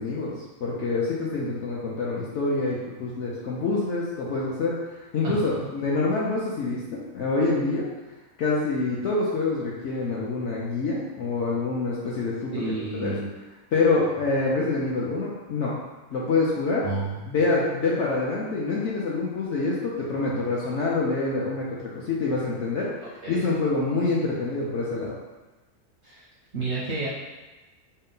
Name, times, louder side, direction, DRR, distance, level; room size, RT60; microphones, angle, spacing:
voice 1, 0.0-4.8 5.1-7.9 8.4-13.2 13.7-15.7 16.1-16.9 17.3-22.9 23.3-25.2, left 3 dB, 65° left, -5 dB, 0.7 m, -26 dB
voice 2, 5.2-5.7 12.5-13.3 16.8-17.3 23.0-23.5 26.0-26.2 26.5-27.1, right 3 dB, 65° right, -6 dB, 0.7 m, -31 dB
4.2 x 2.1 x 3.8 m, 1.1 s
omnidirectional pair, 1.7 m